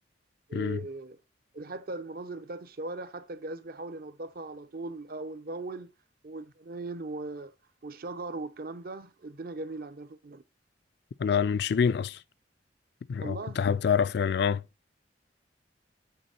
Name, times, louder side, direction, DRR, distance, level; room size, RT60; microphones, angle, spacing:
voice 1, 0.5-1.2 1.5-5.9 6.2-7.5 7.8-10.4 13.2-13.6, right 2 dB, 55° right, 0.7 m, -39 dB
voice 2, 11.2-12.2 13.1-14.6, left 6 dB, 60° left, 0.3 m, -26 dB
7.9 x 4.4 x 4.2 m
head